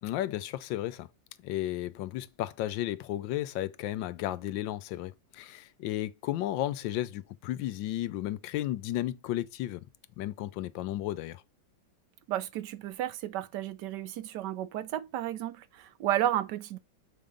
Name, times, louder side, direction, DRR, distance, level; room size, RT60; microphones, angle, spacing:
voice 1, 0.0-1.1 1.4-9.8 10.2-11.4, left 14 dB, 85° left, 1.3 m, -33 dB
voice 2, 12.3-16.8, right 12 dB, 75° right, 1.1 m, -32 dB
7.4 x 3.7 x 5.1 m
omnidirectional pair, 2.0 m